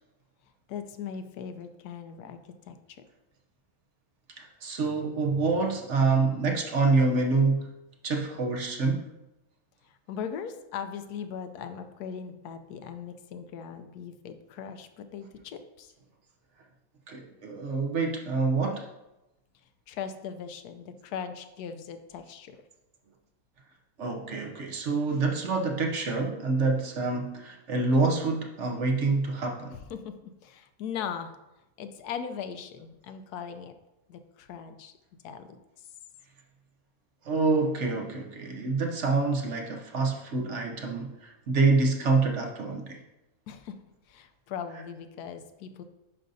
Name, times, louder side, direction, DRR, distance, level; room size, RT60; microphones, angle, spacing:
voice 1, 0.7-2.4 2.7-3.0 9.9-15.9 19.9-22.6 29.9-30.1 30.4-31.4 31.8-33.8 34.1-34.9 35.2-35.6 43.5-43.8 44.1-45.8, left 7 dB, 85° left, 9 dB, 1.2 m, -39 dB
voice 2, 4.4-7.7 8.0-9.1 17.1-18.9 24.0-29.8 37.2-43.0, right 3 dB, 55° right, 2 dB, 1.0 m, -26 dB
10.0 x 5.2 x 2.7 m, 0.94 s
omnidirectional pair, 1.6 m